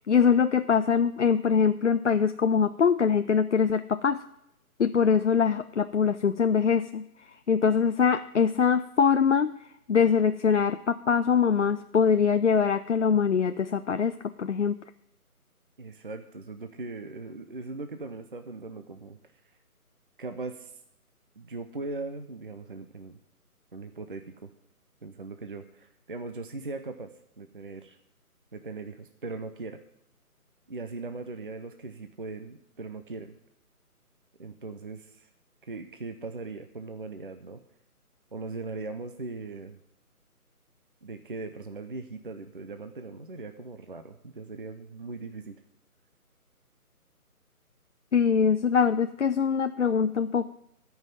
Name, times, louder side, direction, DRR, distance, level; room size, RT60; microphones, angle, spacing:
voice 1, 0.0-4.2 4.8-7.0 7.5-9.5 9.9-14.8 48.1-50.5, left 6 dB, 55° left, 9 dB, 0.5 m, -23 dB
voice 2, 15.8-19.2 20.2-20.8 21.4-23.2 23.7-24.5 25.0-27.1 27.4-28.0 28.5-29.8 30.7-33.3 34.4-35.3 35.6-37.6 38.3-39.8 41.0-45.6, right 3 dB, 35° right, 7 dB, 0.6 m, -39 dB
13.0 x 5.6 x 9.0 m, 0.80 s
figure-of-eight pair, 160°, 45 cm